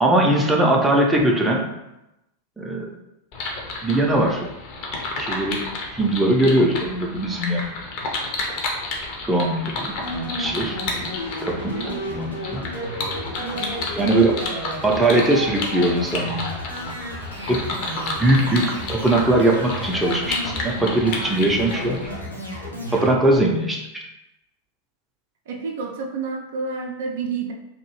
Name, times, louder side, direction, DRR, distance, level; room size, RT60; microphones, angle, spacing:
voice 1, 0.0-1.7 2.6-2.9 3.8-4.5 5.2-5.6 5.9-7.7 9.3-9.9 10.4-10.8 11.4-11.8 12.1-12.6 14.0-14.4 14.8-16.4 17.5-17.9 18.2-22.1 22.9-24.0, right 1 dB, 5° right, -2 dB, 0.5 m, -20 dB
sound 1, 3.3-22.1, left 2 dB, 45° left, 0.7 m, -31 dB
sound 2, 10.0-23.1, equal, 85° left, 1.0 m, -32 dB
voice 2, 11.7-12.0 13.4-13.8 25.5-27.5, right 4 dB, 55° right, 1 dB, 0.4 m, -30 dB
2.8 x 2.6 x 2.9 m, 0.90 s
figure-of-eight pair, 90°, 0 cm